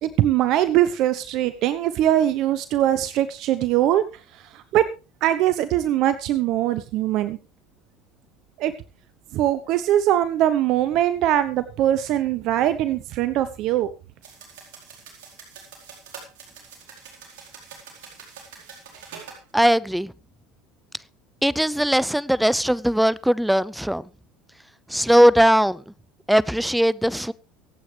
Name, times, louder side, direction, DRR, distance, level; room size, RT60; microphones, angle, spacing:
voice 1, 0.0-4.0 4.3-4.8 5.2-7.4 8.6-8.7 9.3-13.9, right 12 dB, 60° right, 0.9 m, -21 dB
sound 1, 14.2-19.4, right 6 dB, 80° right, 4.4 m, -44 dB
voice 2, 19.5-20.1 21.4-24.1 24.9-25.9 26.3-27.3, equal, 5° right, 0.6 m, -19 dB
24.0 x 8.6 x 3.4 m
hypercardioid pair, 85°, 0 cm